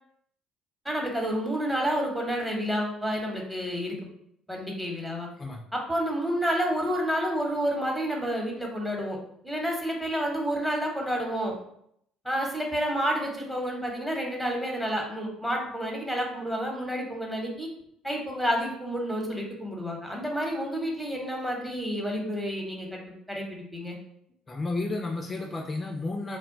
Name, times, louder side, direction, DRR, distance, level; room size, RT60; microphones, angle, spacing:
voice 1, 0.8-4.0 4.5-5.3 5.7-9.2 9.4-11.5 12.2-17.7 18.0-23.0 23.3-24.0, equal, 5° right, 0 dB, 0.9 m, -29 dB
voice 2, 24.5-26.4, left 2 dB, 30° left, 2 dB, 0.3 m, -32 dB
2.2 x 2.1 x 3.7 m, 0.71 s
hypercardioid pair, 60°, 0 cm